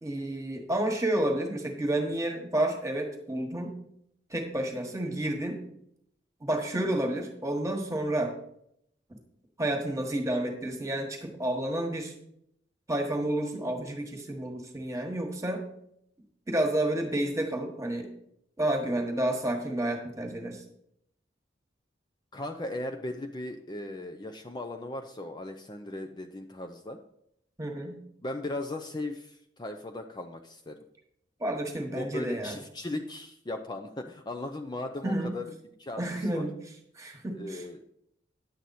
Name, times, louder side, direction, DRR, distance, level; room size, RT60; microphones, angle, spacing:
voice 1, 0.0-3.8 4.3-5.6 6.4-8.3 9.1-9.2 9.6-12.1 12.9-15.6 16.5-18.1 18.6-20.6 27.6-28.0 31.4-32.6 35.0-35.3 36.0-36.5 37.0-37.8, right 1 dB, 20° right, 3 dB, 1.5 m, -30 dB
voice 2, 22.3-27.0 28.2-30.8 31.9-35.5 35.8-36.5 37.3-37.8, left 2 dB, 25° left, 5 dB, 0.5 m, -37 dB
10.5 x 7.8 x 4.2 m, 0.74 s
head